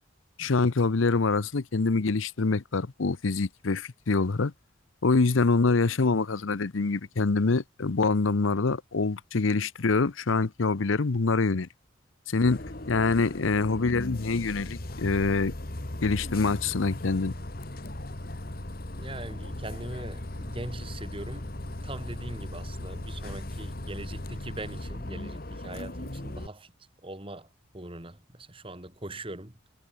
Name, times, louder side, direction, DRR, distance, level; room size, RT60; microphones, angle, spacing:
voice 1, 0.4-4.5 5.0-11.7 12.3-12.6 12.9-15.5 16.0-17.3, left 3 dB, 80° left, 0.8 m, -25 dB
Bus, 12.4-26.5, left 1 dB, 45° left, 1.9 m, -38 dB
voice 2, 19.0-26.7 27.0-27.5 27.7-29.6, right 1 dB, 25° right, 2.2 m, -41 dB
head